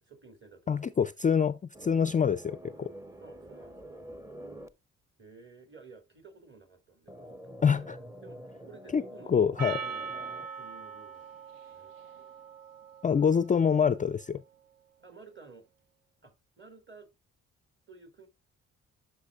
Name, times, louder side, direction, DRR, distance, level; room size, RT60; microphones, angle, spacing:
voice 1, 0.0-1.0 3.2-4.0 5.2-7.8 8.2-9.3 9.8-10.2 10.5-11.9 15.0-15.7 16.2-17.1 17.9-18.3, right 4 dB, 35° right, 2.8 m, -53 dB
voice 2, 0.7-2.9 7.6-8.0 8.9-9.0 9.3-9.8 13.0-14.4, left 7 dB, 25° left, 0.4 m, -25 dB
sound 1, 1.7-4.7 7.1-10.5, equal, 10° right, 0.7 m, -47 dB
Percussion, 9.6-14.1, right 6 dB, 75° right, 1.0 m, -42 dB
12.0 x 5.0 x 2.5 m
supercardioid pair, 50°, 34 cm